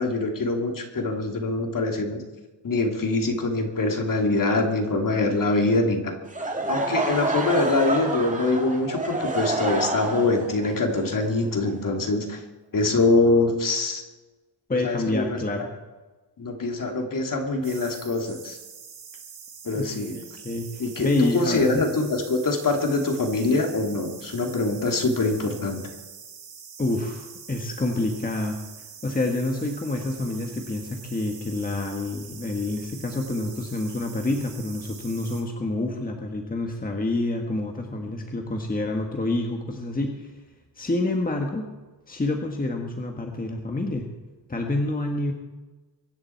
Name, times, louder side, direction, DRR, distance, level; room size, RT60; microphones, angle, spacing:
voice 1, 0.0-2.2 2.6-6.2 6.7-12.4 12.7-14.0 14.8-15.4 16.4-18.6 19.6-20.2 20.8-25.9, left 2 dB, 45° left, 2 dB, 2.8 m, -24 dB
Laughter / Crowd, 6.3-12.2, right 2 dB, 15° right, 2.2 m, -28 dB
voice 2, 14.7-15.7 19.7-21.8 26.8-28.6 29.0-40.3 40.8-41.6 42.1-44.1 44.5-45.3, left 2 dB, 20° left, 2 dB, 1.6 m, -28 dB
sound 1, 17.6-35.4, right 7 dB, 85° right, 4.1 m, -44 dB
23.5 x 10.5 x 4.6 m, 1.2 s
wide cardioid pair, 125°, 44 cm